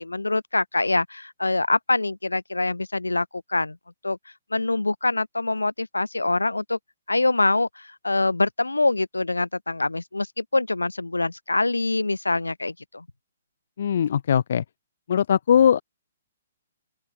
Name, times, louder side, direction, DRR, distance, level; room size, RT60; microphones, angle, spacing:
voice 1, 0.0-3.8 4.0-4.2 4.5-6.8 7.1-13.1, left 2 dB, 90° left, 5.5 m, -24 dB
voice 2, 13.8-14.6 15.1-15.8, left 8 dB, 60° left, 3.7 m, -20 dB
open air
figure-of-eight pair, 125°, 0 cm